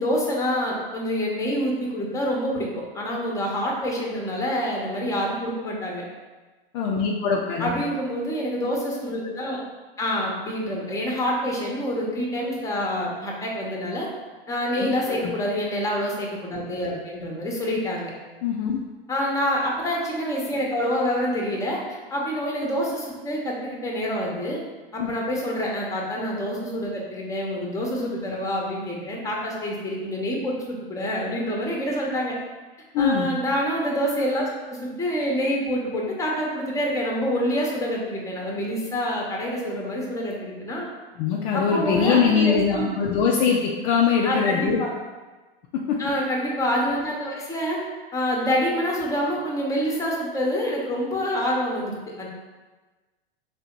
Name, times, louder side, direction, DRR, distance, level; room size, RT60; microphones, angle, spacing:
voice 1, 0.0-2.7 2.9-6.0 7.6-9.6 10.0-14.1 14.5-18.1 19.1-24.6 24.9-32.3 33.0-40.9 41.5-42.9 44.2-44.9 46.0-47.8 48.1-52.3, equal, 10° left, -2 dB, 0.8 m, -27 dB
voice 2, 6.7-7.7 14.8-15.3 18.4-18.8 25.0-25.1 32.9-33.3 41.2-44.8 45.7-46.0, left 6 dB, 45° left, -1 dB, 0.5 m, -22 dB
3.4 x 2.7 x 4.4 m, 1.3 s
hypercardioid pair, 115°, 30 cm